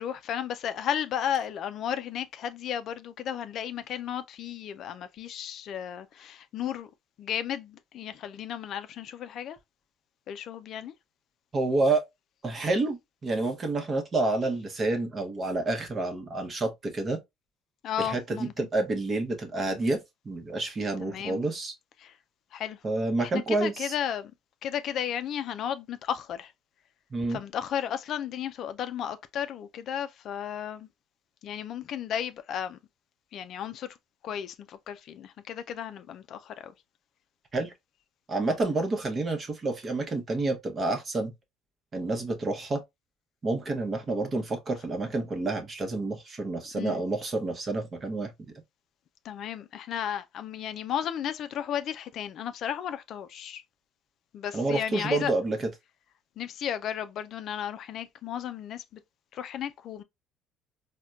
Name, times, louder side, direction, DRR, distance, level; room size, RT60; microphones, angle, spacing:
voice 1, 0.0-6.9 7.2-9.6 10.3-10.9 17.8-18.5 21.0-21.4 22.0-22.1 22.5-22.8 23.2-24.3 24.6-26.5 27.3-30.9 31.4-32.8 33.3-33.9 34.2-36.7 46.7-47.0 49.2-53.6 54.3-55.3 56.4-59.0 59.3-60.0, left 9 dB, 55° left, 0.3 m, -34 dB
voice 2, 11.5-12.0 12.4-17.2 18.0-21.7 22.8-23.9 27.1-27.4 37.5-37.7 38.3-41.3 41.9-42.8 43.4-48.3 54.5-55.7, right 2 dB, 30° right, 0.8 m, -29 dB
4.2 x 2.1 x 2.3 m
cardioid pair, 105°, 0 cm